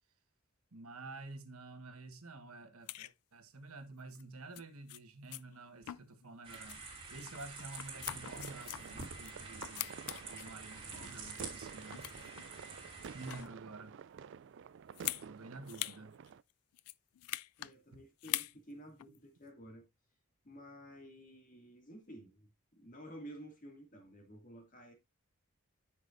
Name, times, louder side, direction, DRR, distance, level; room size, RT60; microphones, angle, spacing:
voice 1, 0.7-10.0 10.3-12.1 13.1-13.9 15.2-16.1, right 3 dB, 80° right, 1.3 m, -50 dB
sound 1, 2.9-3.1 4.1-4.2 4.6-4.7 4.9-5.0 5.3-5.4 5.9-6.3 6.5-6.8 7.3-9.3 9.6-10.5 11.1-11.6 11.9-12.4 13.1-13.6 14.9-15.3 15.7-16.0 16.3-16.4 16.7-17.7 18.2-18.5 19.0-19.2, left 17 dB, 85° left, 0.3 m, -42 dB
sound 2, 6.4-13.4, right 3 dB, 25° right, 3.0 m, -48 dB
sound 3, 7.9-16.4, right 7 dB, 55° right, 0.3 m, -51 dB
voice 2, 17.6-19.9 20.4-24.9, equal, 35° left, 2.3 m, -52 dB
9.9 x 6.1 x 2.6 m
head